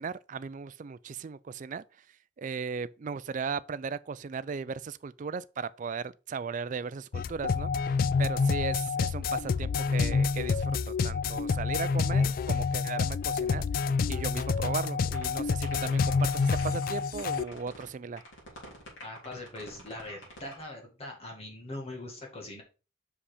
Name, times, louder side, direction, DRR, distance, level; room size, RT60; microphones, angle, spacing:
voice 1, 0.0-1.8 2.4-13.6 14.1-18.2, right 5 dB, 40° right, 0.3 m, -37 dB
sound 1, 7.1-17.4, left 5 dB, 45° left, 0.3 m, -28 dB
sound 2, 14.6-14.9 15.1-15.2 15.6-16.9 17.2-17.9 18.2-20.6, left 1 dB, 70° left, 3.5 m, -47 dB
voice 2, 19.0-22.6, left 1 dB, 30° left, 1.8 m, -42 dB
5.6 x 5.0 x 4.9 m
head